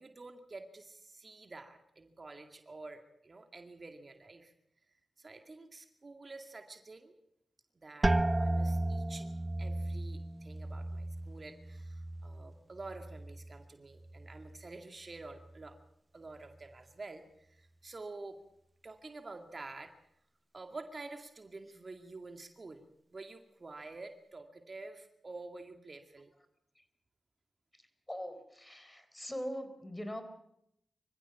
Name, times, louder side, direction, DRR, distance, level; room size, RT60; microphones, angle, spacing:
voice 1, 0.0-4.5 5.2-7.1 7.7-9.3 9.6-15.8 16.1-18.4 18.8-19.9 20.5-22.8 23.1-26.3, right 3 dB, 45° right, 6 dB, 2.2 m, -49 dB
sound 1, 8.0-13.7 14.0-14.7 15.2-15.6, right 1 dB, 25° right, 0.8 m, -35 dB
voice 2, 28.1-30.2, equal, 15° left, 9 dB, 4.3 m, -41 dB
25.0 x 15.0 x 7.0 m, 0.76 s
supercardioid pair, 45°, 0 cm